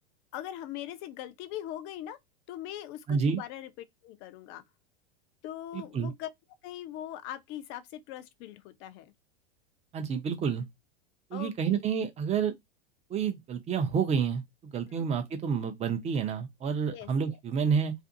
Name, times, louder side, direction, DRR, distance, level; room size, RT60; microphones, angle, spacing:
voice 1, 0.3-2.2 2.5-3.7 4.0-4.6 5.4-6.3 6.6-9.1 11.3-11.8 15.0-15.1 16.9-17.4, left 12 dB, 40° left, 0.5 m, -41 dB
voice 2, 3.1-3.4 5.7-6.1 9.9-10.6 11.3-12.5 13.1-17.9, right 6 dB, 20° right, 0.6 m, -29 dB
2.5 x 2.5 x 2.5 m
hypercardioid pair, 105°, 31 cm